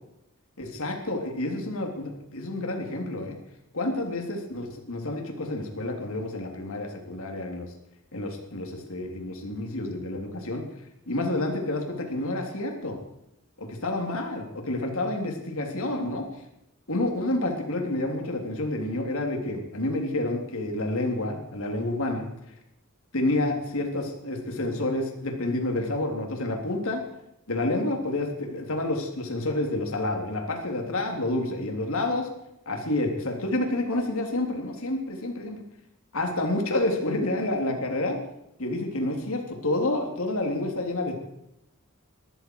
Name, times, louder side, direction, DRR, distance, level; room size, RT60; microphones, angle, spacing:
voice 1, 0.6-3.4 3.7-7.7 8.1-10.6 11.1-13.0 13.6-16.2 16.9-22.2 23.1-27.0 27.5-32.3 32.7-35.6 36.1-38.2 38.6-41.2, left 2 dB, 70° left, 2 dB, 3.5 m, -29 dB
20.0 x 14.5 x 4.8 m, 0.84 s
head